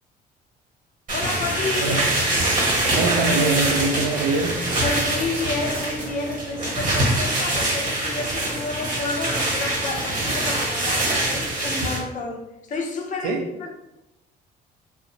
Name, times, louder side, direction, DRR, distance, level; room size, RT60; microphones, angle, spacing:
voice 1, 1.1-2.0 4.8-12.4 12.7-13.7, left 3 dB, 50° left, 2 dB, 0.5 m, -30 dB
sound 1, 1.1-12.0, right 1 dB, 55° right, 1.0 m, -24 dB
voice 2, 2.9-4.8 13.2-13.4, right 3 dB, 90° right, 3 dB, 0.4 m, -23 dB
2.5 x 2.0 x 2.8 m, 0.91 s
cardioid pair, 110°, 17 cm